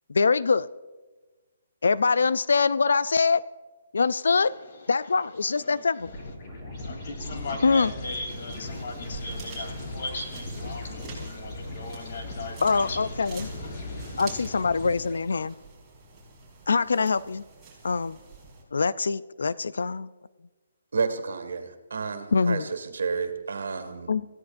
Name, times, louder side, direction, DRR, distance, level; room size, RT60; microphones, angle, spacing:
voice 1, 0.1-0.7 1.8-3.4 3.9-4.5 4.9-6.1 7.6-7.9 12.6-13.5 14.2-15.5 16.7-17.4 17.8-18.2 18.7-20.1 22.3-22.7 24.1-24.3, left 4 dB, 85° left, 0.4 m, -24 dB
voice 2, 4.7-6.3 6.8-14.6, left 2 dB, 55° left, 3.1 m, -39 dB
sound 1, 6.0-15.5, left 1 dB, 30° left, 5.5 m, -38 dB
sound 2, 8.2-18.6, right 4 dB, 10° right, 4.9 m, -48 dB
voice 3, 20.9-24.1, right 5 dB, 80° right, 2.1 m, -31 dB
27.5 x 15.5 x 2.6 m
hypercardioid pair, 160°, 0 cm